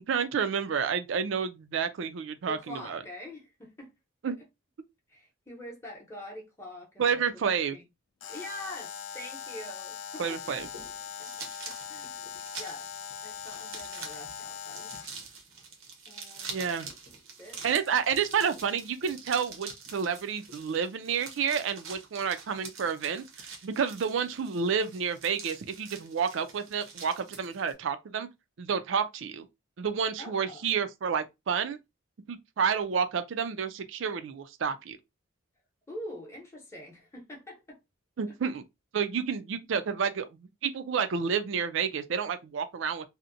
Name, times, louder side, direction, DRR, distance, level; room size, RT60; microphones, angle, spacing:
voice 1, 0.1-3.0 4.2-4.4 7.0-7.8 10.2-10.7 16.5-16.9 17.6-28.3 28.6-29.5 29.8-31.8 32.3-35.0 38.2-38.6 38.9-43.1, right 6 dB, 70° right, 0.4 m, -30 dB
voice 2, 2.5-3.9 5.1-7.2 7.7-7.9 8.3-10.4 11.2-12.3 12.6-12.9 13.2-14.9 16.1-17.0 17.4-18.0 30.2-30.7 35.9-37.8, left 1 dB, 15° left, 0.7 m, -45 dB
Alarm, 8.2-15.2, left 8 dB, 70° left, 0.3 m, -41 dB
sound 1, 10.4-27.7, right 5 dB, 85° right, 0.8 m, -46 dB
2.7 x 2.1 x 2.5 m
head